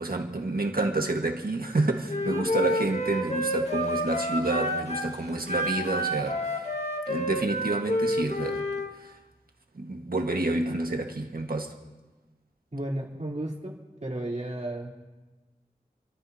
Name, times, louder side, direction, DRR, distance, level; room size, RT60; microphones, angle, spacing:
voice 1, 0.0-6.7 7.1-8.6 9.0-9.1 9.7-11.8, right 2 dB, 70° right, 1.6 m, -29 dB
Wind instrument woodwind instrument, 2.1-5.1 5.5-8.9, equal, 45° left, 1.9 m, -29 dB
voice 2, 12.7-13.7 14.0-14.9, right 1 dB, 45° right, 3.5 m, -33 dB
29.0 x 13.5 x 2.9 m
wide cardioid pair, 50°, 16 cm